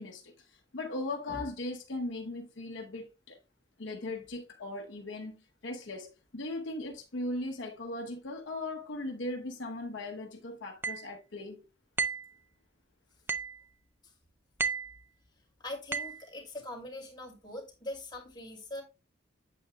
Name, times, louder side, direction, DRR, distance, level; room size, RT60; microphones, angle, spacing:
voice 1, 0.0-3.4 3.8-11.6, left 2 dB, 70° left, 0.9 m, -38 dB
sound 1, 10.8-11.1 12.0-12.3 13.3-13.6 14.6-15.0 15.9-16.2, right 5 dB, 10° right, 0.4 m, -32 dB
voice 2, 15.6-18.8, left 1 dB, 25° left, 2.6 m, -42 dB
8.5 x 7.8 x 2.2 m
head